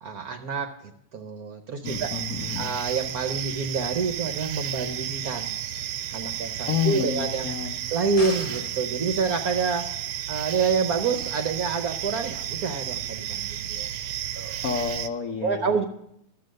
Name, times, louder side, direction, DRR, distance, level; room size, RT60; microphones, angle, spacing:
voice 1, 0.0-2.1 2.6-5.6 6.1-7.5 7.9-9.9 10.3-13.9 14.3-14.6 15.4-15.8, right 4 dB, 60° right, 6 dB, 1.0 m, -28 dB
voice 2, 1.8-2.7 6.7-7.8 14.6-15.7, left 7 dB, 65° left, 1 dB, 0.9 m, -29 dB
sound 1, 1.9-15.1, right 10 dB, 85° right, 1.5 m, -33 dB
sound 2, 8.2-8.9, left 4 dB, 45° left, 1.0 m, -38 dB
13.0 x 7.7 x 6.4 m, 0.73 s
omnidirectional pair, 2.3 m